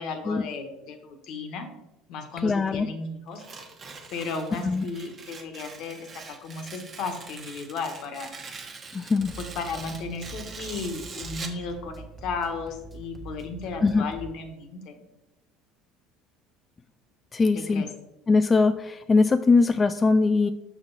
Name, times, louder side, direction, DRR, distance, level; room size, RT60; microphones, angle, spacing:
voice 1, 0.0-1.7 2.1-3.4 4.1-6.1 6.4-8.3 9.5-15.0 17.7-17.9, left 4 dB, 65° left, 6 dB, 1.3 m, -34 dB
voice 2, 2.4-2.9 4.6-4.8 8.9-9.4 13.8-14.0 17.3-17.9 18.3-20.5, left 4 dB, 25° left, 9 dB, 0.3 m, -21 dB
Tearing, 3.3-11.6, right 4 dB, 35° right, 1.2 m, -43 dB
sound 1, 9.2-14.3, right 3 dB, 15° right, 1.5 m, -44 dB
6.7 x 6.1 x 4.0 m, 0.95 s
supercardioid pair, 100°, 0 cm